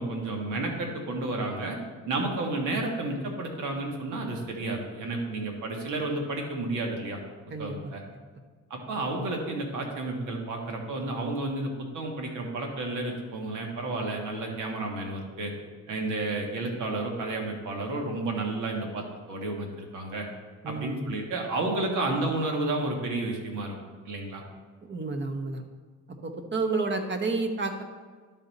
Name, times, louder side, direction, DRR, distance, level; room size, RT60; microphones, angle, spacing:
voice 1, 0.0-1.8 2.0-7.2 7.6-8.0 8.7-15.5 15.9-20.2 20.6-23.7 24.0-24.4, right 2 dB, 80° right, 1 dB, 1.5 m, -31 dB
voice 2, 7.5-7.9 20.6-21.0 24.8-25.6 26.2-27.8, right 3 dB, 40° right, 5 dB, 1.1 m, -30 dB
12.0 x 4.1 x 4.0 m, 1.5 s
cardioid pair, 90°, 30 cm